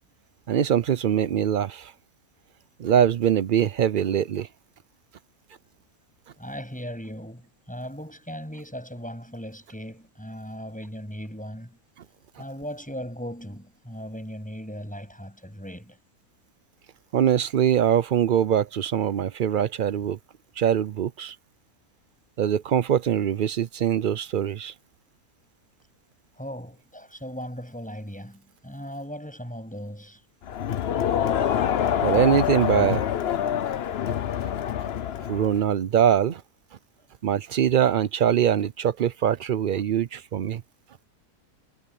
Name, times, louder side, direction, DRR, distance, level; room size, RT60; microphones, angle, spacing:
voice 1, 0.5-1.9 2.8-4.5 17.1-20.2 20.6-21.4 22.4-24.7 32.0-33.0 35.3-36.4 37.2-40.6, right 9 dB, 90° right, 0.4 m, -23 dB
voice 2, 6.4-11.8 12.4-16.0 26.4-30.2, equal, 5° left, 7.8 m, -38 dB
Crowd, 30.5-35.6, left 9 dB, 55° left, 0.8 m, -26 dB
omnidirectional pair, 1.6 m